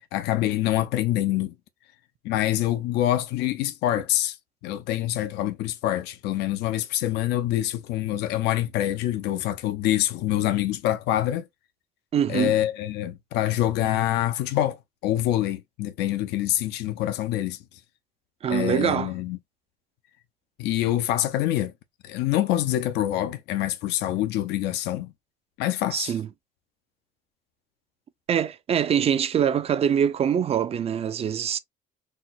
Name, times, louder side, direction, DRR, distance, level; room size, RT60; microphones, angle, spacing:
voice 1, 0.1-1.5 2.2-4.4 4.6-11.5 12.3-14.8 15.0-17.6 18.5-19.4 20.6-21.7 22.0-25.1 25.6-26.1, left 13 dB, 90° left, 0.5 m, -25 dB
voice 2, 12.1-12.6 18.4-19.1 25.9-26.3 28.3-31.6, right 8 dB, 35° right, 0.4 m, -24 dB
4.2 x 2.0 x 2.3 m
cardioid pair, 110°, 17 cm